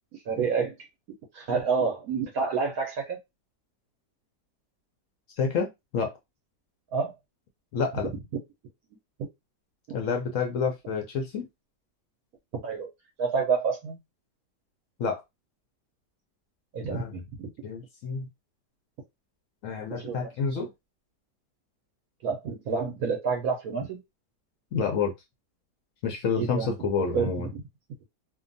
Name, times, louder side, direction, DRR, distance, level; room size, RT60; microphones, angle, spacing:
voice 1, 0.3-0.7 1.3-3.2 6.9-7.1 12.6-12.9 13.2-14.0 16.7-17.5 19.9-20.3 22.2-24.0 26.4-26.7 27.1-27.6, right 5 dB, 70° right, 0.9 m, -28 dB
voice 2, 5.4-6.1 7.7-8.1 9.9-11.5 15.0-15.2 16.9-17.1 17.6-18.3 19.6-20.7 24.7-25.1 26.0-27.5, left 5 dB, 70° left, 0.7 m, -29 dB
2.7 x 2.2 x 2.5 m
omnidirectional pair, 1.8 m